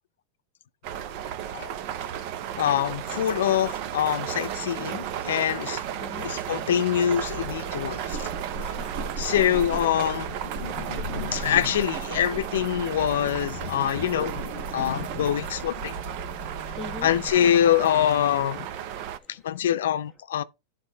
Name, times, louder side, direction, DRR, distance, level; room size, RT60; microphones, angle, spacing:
sound 1, 0.8-19.2, right 10 dB, 50° right, 0.8 m, -34 dB
voice 1, 2.6-5.8 6.2-8.3 9.2-15.9 17.0-18.6 19.3-20.4, left 10 dB, 85° left, 0.5 m, -25 dB
sound 2, 7.1-17.3, right 3 dB, 65° right, 2.3 m, -37 dB
voice 2, 16.4-17.1 19.1-19.6, left 2 dB, 10° right, 1.7 m, -43 dB
9.7 x 4.1 x 3.9 m
supercardioid pair, 150°, 0 cm